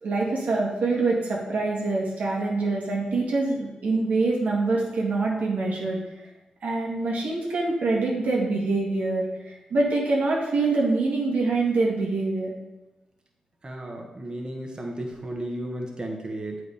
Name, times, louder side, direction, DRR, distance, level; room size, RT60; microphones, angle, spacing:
voice 1, 0.0-6.3 6.6-12.5, right 3 dB, 80° right, -3 dB, 1.9 m, -25 dB
voice 2, 13.6-16.6, right 1 dB, 35° right, 0 dB, 1.4 m, -34 dB
7.8 x 5.0 x 5.0 m, 1.1 s
cardioid pair, 65°, 3 cm